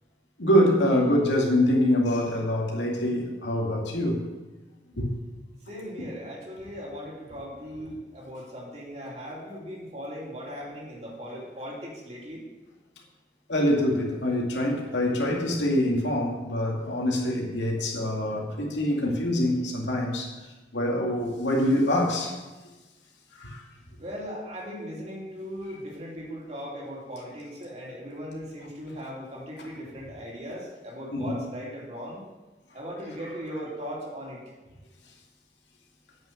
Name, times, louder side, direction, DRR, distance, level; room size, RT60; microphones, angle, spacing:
voice 1, 0.4-4.2 5.0-5.2 11.3-11.4 13.5-20.3 20.7-22.4 23.4-23.6 31.1-31.3, left 1 dB, 90° left, 2.2 m, -25 dB
voice 2, 5.7-12.4 24.0-32.2 32.7-34.4, equal, 35° right, 3.0 m, -38 dB
8.9 x 5.9 x 7.7 m
head